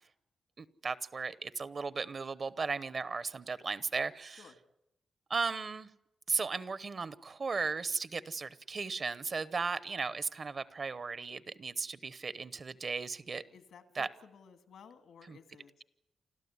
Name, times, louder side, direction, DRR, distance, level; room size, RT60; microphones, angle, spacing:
voice 1, 0.6-4.4 5.3-5.9 6.3-13.4 13.9-14.1 15.3-15.4, right 4 dB, 35° right, 16 dB, 0.8 m, -36 dB
voice 2, 13.5-15.7, left 7 dB, 85° left, 9 dB, 2.0 m, -55 dB
29.0 x 13.0 x 9.6 m, 0.89 s
wide cardioid pair, 160°, 0 cm